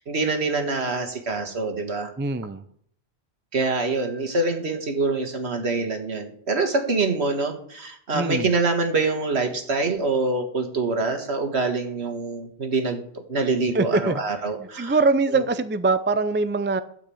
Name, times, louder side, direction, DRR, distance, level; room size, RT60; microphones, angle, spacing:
voice 1, 0.0-2.1 3.5-13.0 13.3-15.0 15.3-15.4, right 3 dB, 75° right, 1.9 m, -25 dB
voice 2, 2.2-2.6 8.1-8.5 13.7-16.8, right 3 dB, 20° right, 0.3 m, -23 dB
12.5 x 5.9 x 8.5 m
omnidirectional pair, 1.1 m